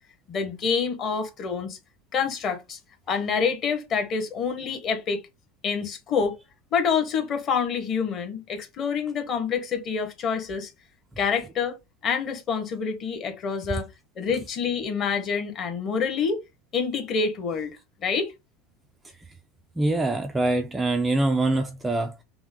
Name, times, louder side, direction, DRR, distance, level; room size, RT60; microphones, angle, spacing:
voice 1, 0.3-1.8 2.1-2.8 3.1-5.2 5.6-6.4 6.7-10.7 11.2-11.8 12.0-13.9 14.2-16.4 16.7-17.7 18.0-18.3, left 6 dB, 25° left, 1.0 m, -27 dB
voice 2, 19.8-22.2, right 2 dB, 10° right, 0.3 m, -24 dB
6.0 x 2.1 x 3.5 m
supercardioid pair, 175°, 0 cm